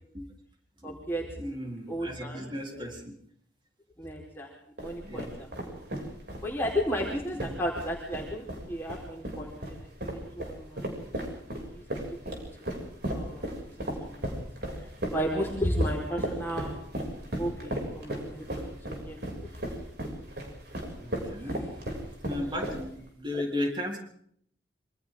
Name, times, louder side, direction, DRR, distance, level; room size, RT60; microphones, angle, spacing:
voice 1, 0.8-1.6 1.9-2.8 4.0-4.5 4.8-5.8 6.4-10.9 11.7-11.8 12.1-12.7 13.1-14.2 14.8-16.8 17.4-19.5 21.4-21.7 23.3-23.4, equal, 10° left, -3 dB, 4.4 m, -34 dB
voice 2, 1.4-3.1 5.0-5.3 7.3-7.5 21.0-21.6 22.2-24.0, left 1 dB, 25° right, 1 dB, 4.0 m, -35 dB
sound 1, 4.8-23.1, right 1 dB, 55° right, 6.8 m, -36 dB
27.5 x 25.5 x 3.8 m, 0.65 s
head